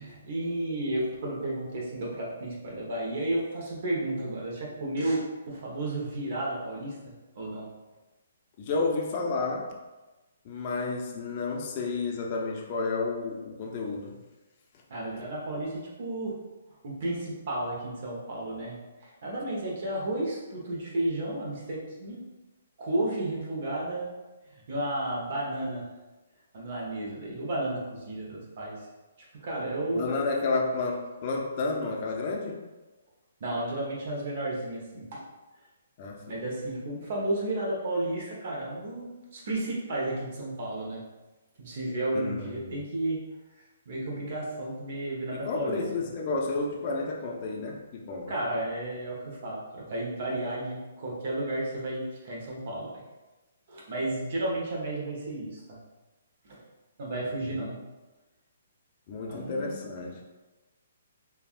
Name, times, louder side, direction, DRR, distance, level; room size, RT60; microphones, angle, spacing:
voice 1, 0.0-7.0 7.3-7.7 14.9-16.3 16.8-22.2 22.8-24.1 24.7-25.8 26.5-28.7 29.3-30.1 33.4-35.2 36.3-41.0 41.6-43.2 43.9-46.1 48.3-52.9 53.7-55.8 56.4-56.6 57.0-57.8 59.3-59.8, right 1 dB, 55° right, -4 dB, 0.9 m, -32 dB
voice 2, 8.6-9.7 10.4-14.1 29.9-32.6 36.0-36.4 42.1-42.8 45.5-48.3 57.4-57.6 59.1-60.2, left 3 dB, 40° left, 0 dB, 0.5 m, -31 dB
3.4 x 2.3 x 2.4 m, 1.1 s
hypercardioid pair, 145°, 0 cm